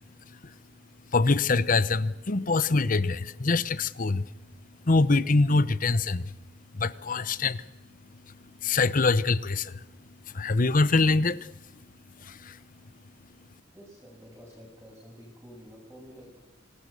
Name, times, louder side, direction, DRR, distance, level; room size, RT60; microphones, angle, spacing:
voice 1, 1.1-4.3 4.9-6.4 6.7-7.6 8.6-9.8 10.3-11.5 12.2-12.6, left 3 dB, 45° left, 0.9 m, -24 dB
voice 2, 13.7-16.4, equal, 10° right, 7.2 m, -49 dB
27.5 x 18.5 x 6.8 m
head